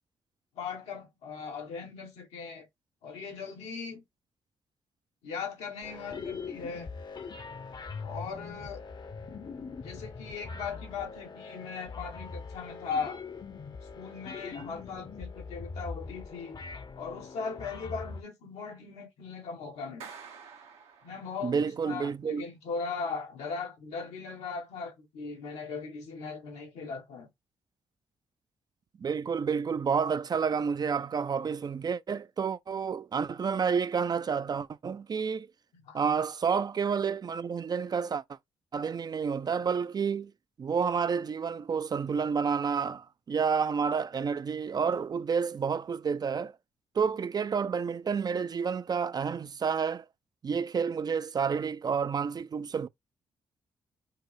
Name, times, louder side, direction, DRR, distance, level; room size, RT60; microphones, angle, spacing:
voice 1, 0.5-2.7 3.0-4.0 5.2-6.9 8.0-8.8 9.8-13.2 13.9-16.6 17.0-20.1 21.0-27.3 35.9-36.0, left 5 dB, 85° left, 1.3 m, -38 dB
sound 1, 5.8-18.2, left 4 dB, 45° left, 0.7 m, -42 dB
Clapping, 20.0-21.7, right 6 dB, 80° right, 1.0 m, -48 dB
voice 2, 21.4-22.5 29.0-35.5 35.9-38.2 38.7-40.3 40.6-46.5 47.0-50.1 50.4-52.9, right 6 dB, 40° right, 0.4 m, -30 dB
4.6 x 2.0 x 4.6 m
supercardioid pair, 55°, 11 cm